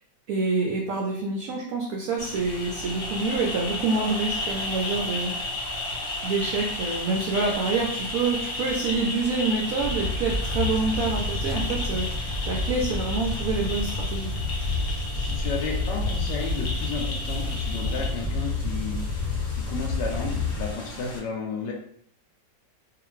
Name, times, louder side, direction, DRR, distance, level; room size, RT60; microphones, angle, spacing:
voice 1, 0.3-5.3 6.2-14.3, right 3 dB, 75° right, -1 dB, 0.8 m, -27 dB
sound 1, 2.2-21.2, left 2 dB, 55° left, 0.7 m, -34 dB
sound 2, 9.8-20.7, left 3 dB, 10° left, 1.2 m, -29 dB
voice 2, 15.1-19.0 19.5-21.7, left 4 dB, 75° left, 0 dB, 1.1 m, -33 dB
2.8 x 2.5 x 3.0 m, 0.66 s
omnidirectional pair, 2.0 m